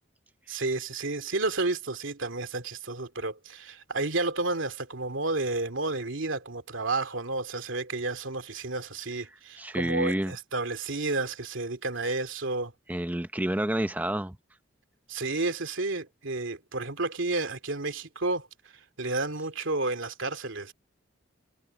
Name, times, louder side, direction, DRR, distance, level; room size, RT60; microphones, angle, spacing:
voice 1, 0.5-12.7 15.1-18.5 19.0-20.7, right 2 dB, 90° right, 2.5 m, -31 dB
voice 2, 9.6-10.3 12.9-14.4, right 1 dB, 10° right, 0.7 m, -29 dB
head